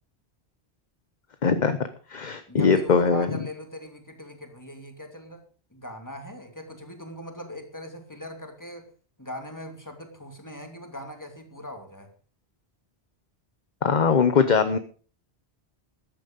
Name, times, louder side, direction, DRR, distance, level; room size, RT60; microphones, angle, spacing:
voice 1, 1.4-1.8 2.1-3.4 13.8-14.8, left 5 dB, 45° left, 10 dB, 1.0 m, -21 dB
voice 2, 2.5-5.4 5.7-8.9 9.2-12.1, equal, 15° left, 4 dB, 2.6 m, -40 dB
14.0 x 10.5 x 5.2 m, 0.40 s
omnidirectional pair, 1.1 m